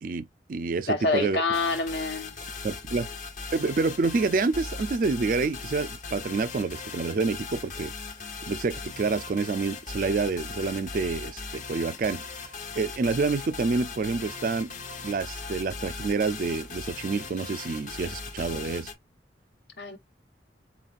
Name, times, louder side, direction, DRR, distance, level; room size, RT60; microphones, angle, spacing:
voice 1, 0.0-1.4 2.6-3.1 3.5-7.9 8.5-12.2 12.8-14.7 15.0-18.9, right 4 dB, 50° right, 0.4 m, -28 dB
voice 2, 0.9-2.4 19.8-20.0, left 3 dB, 70° left, 1.1 m, -27 dB
sound 1, 1.5-18.9, left 4 dB, 45° left, 0.8 m, -39 dB
4.1 x 4.0 x 2.4 m
head